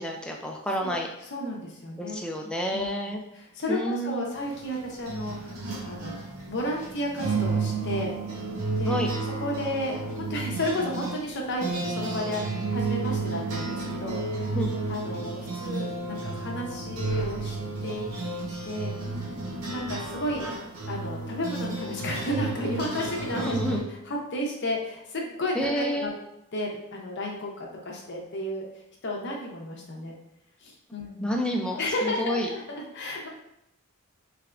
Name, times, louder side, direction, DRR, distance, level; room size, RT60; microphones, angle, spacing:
voice 1, 0.0-1.1 2.0-3.2 3.7-4.3 8.9-9.1 14.5-14.7 23.3-23.9 25.6-26.1 31.2-32.5, equal, 5° left, 1 dB, 0.3 m, -29 dB
voice 2, 1.3-2.2 2.7-6.2 6.5-8.1 8.8-9.0 9.4-14.6 14.9-17.6 17.8-18.3 18.6-18.9 19.7-20.4 20.9-26.1 26.5-28.7 29.0-30.1 30.6-31.3 31.8-33.3, left 1 dB, 50° left, -1 dB, 0.7 m, -33 dB
sound 1, 4.3-23.8, right 3 dB, 75° right, 0.8 m, -32 dB
3.3 x 3.3 x 2.4 m, 0.82 s
head